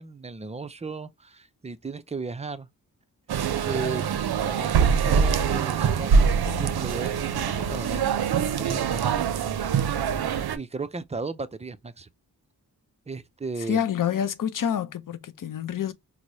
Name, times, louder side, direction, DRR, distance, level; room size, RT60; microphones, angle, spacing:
voice 1, 0.0-2.7 3.6-4.0 4.4-9.5 10.5-12.1 13.1-13.9, right 4 dB, 20° right, 0.3 m, -36 dB
sound 1, 3.3-10.6, right 6 dB, 75° right, 0.5 m, -24 dB
voice 2, 13.7-15.9, left 9 dB, 55° left, 0.6 m, -27 dB
4.6 x 2.0 x 2.6 m
wide cardioid pair, 90°, 38 cm